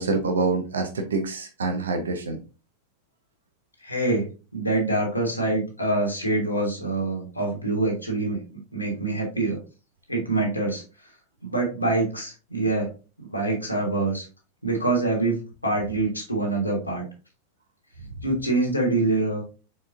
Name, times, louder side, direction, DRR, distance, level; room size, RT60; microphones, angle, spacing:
voice 1, 0.0-2.4, right 3 dB, 70° right, 5 dB, 0.7 m, -26 dB
voice 2, 3.8-9.6 10.1-10.8 11.4-12.9 13.2-14.3 14.6-17.0 18.2-19.4, right 2 dB, 85° left, 0 dB, 1.5 m, -25 dB
4.5 x 4.1 x 2.5 m, 0.33 s
figure-of-eight pair, 90°, 0 cm